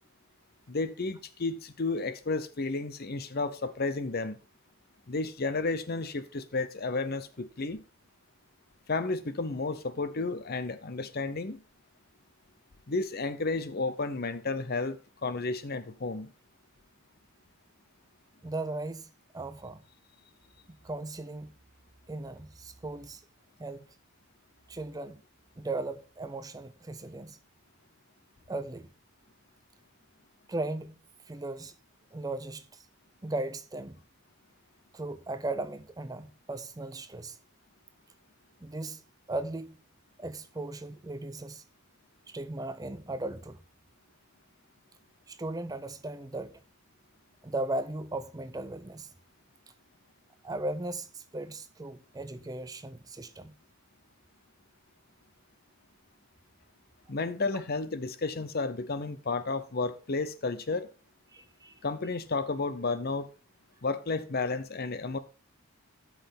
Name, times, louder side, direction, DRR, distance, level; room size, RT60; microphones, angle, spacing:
voice 1, 0.7-4.4 5.1-7.8 8.9-11.6 12.9-16.3 57.1-60.9 61.8-63.3 63.8-65.2, left 3 dB, 45° left, 0.7 m, -32 dB
voice 2, 18.4-19.8 20.7-21.5 22.1-23.2 23.6-23.9 24.7-25.2 25.6-27.4 28.5-28.9 30.5-31.0 31.3-31.8 32.1-32.9 33.2-34.0 34.9-37.4 38.6-39.0 39.3-39.8 40.2-41.6 42.3-43.6 45.3-46.6 47.4-49.1 50.4-53.5 61.3-61.7, right 2 dB, 15° right, 0.5 m, -37 dB
12.5 x 5.9 x 3.6 m
head